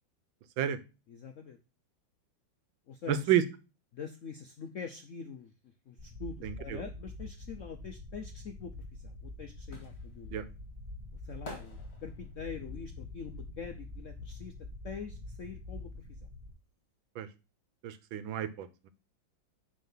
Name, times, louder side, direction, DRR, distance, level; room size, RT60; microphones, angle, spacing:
voice 1, 1.1-1.6 2.9-3.3 3.9-5.5 5.9-10.4 11.2-14.5 14.8-16.1, left 6 dB, 70° left, 6 dB, 0.7 m, -44 dB
voice 2, 3.1-3.4 6.4-6.8 10.3-10.4 17.2-17.3 17.8-18.9, right 10 dB, 85° right, 13 dB, 1.6 m, -30 dB
sound 1, 6.0-16.5, left 2 dB, 20° right, 3.0 m, -45 dB
sound 2, 9.0-14.7 15.0-16.6 16.8-16.9, left 1 dB, 30° left, 2.3 m, -51 dB
9.2 x 3.7 x 5.5 m, 0.31 s
omnidirectional pair, 2.1 m